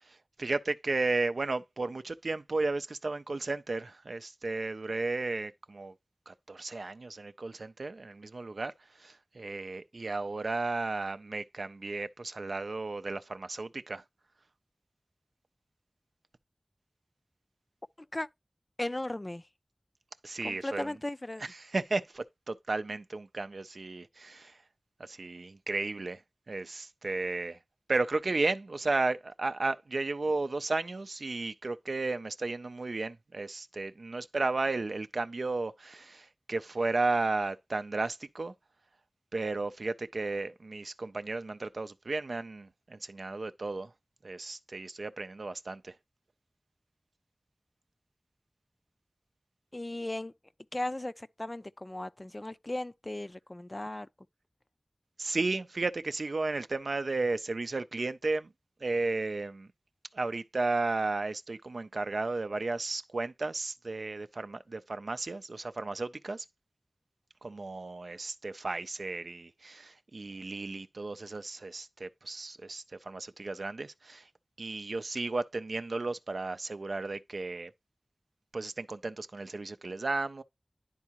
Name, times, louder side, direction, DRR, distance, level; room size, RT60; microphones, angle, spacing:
voice 1, 0.4-5.9 6.3-8.7 9.0-14.0 20.2-20.9 21.4-24.6 25.0-26.2 26.5-27.6 27.9-38.5 39.3-43.9 44.2-45.9 55.2-58.5 58.8-59.7 60.1-66.5 67.4-74.3 74.6-77.7 78.5-80.4, right 3 dB, 85° right, 0.4 m, -34 dB
voice 2, 18.8-19.5 20.4-21.4 49.7-50.3 50.7-54.1, left 1 dB, 35° left, 0.3 m, -36 dB
10.5 x 3.6 x 2.9 m
wide cardioid pair, 45°, 0 cm